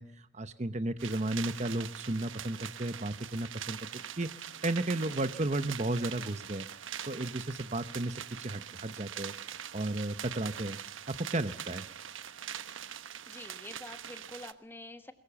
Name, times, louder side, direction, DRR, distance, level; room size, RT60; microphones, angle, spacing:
voice 1, 0.0-4.3 4.6-6.7 7.0-9.3 9.7-10.8 11.1-11.9, right 2 dB, 35° right, 11 dB, 0.9 m, -34 dB
sound 1, 1.0-14.5, right 9 dB, 75° right, 1.1 m, -43 dB
voice 2, 13.3-15.1, left 1 dB, 10° left, 9 dB, 1.4 m, -47 dB
22.0 x 22.0 x 7.1 m, 0.74 s
head